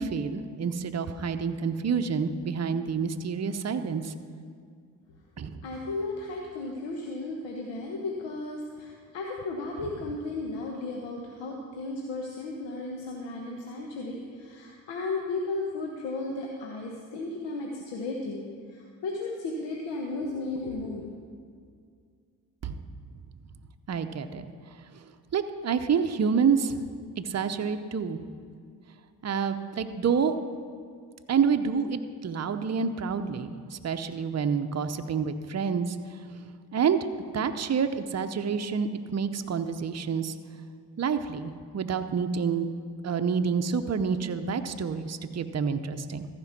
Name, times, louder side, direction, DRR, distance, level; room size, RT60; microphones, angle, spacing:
voice 1, 0.0-4.1 5.4-5.5 22.6-22.8 23.9-24.4 25.3-26.8 27.2-28.2 29.2-30.4 31.3-36.0 36.7-37.0 37.3-40.3 41.0-42.7 43.0-46.3, right 6 dB, 35° right, 8 dB, 0.7 m, -28 dB
voice 2, 5.6-18.4 18.7-21.1, left 2 dB, 75° left, 0 dB, 1.2 m, -34 dB
14.0 x 5.2 x 5.9 m, 2.1 s
hypercardioid pair, 45°, 44 cm